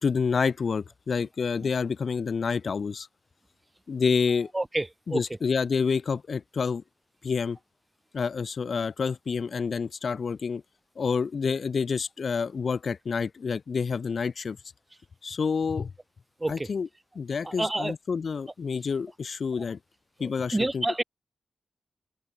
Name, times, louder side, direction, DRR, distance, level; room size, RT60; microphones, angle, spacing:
voice 1, 0.0-3.1 3.9-4.5 5.1-6.8 7.2-7.6 8.1-10.6 11.0-14.6 15.2-15.9 16.5-16.9 17.1-19.8 20.2-21.0, left 5 dB, 65° left, 2.6 m, -28 dB
voice 2, 4.5-5.2 16.4-16.7 17.4-17.9 20.2-21.0, right 2 dB, 25° right, 2.1 m, -28 dB
supercardioid pair, 40°, 0 cm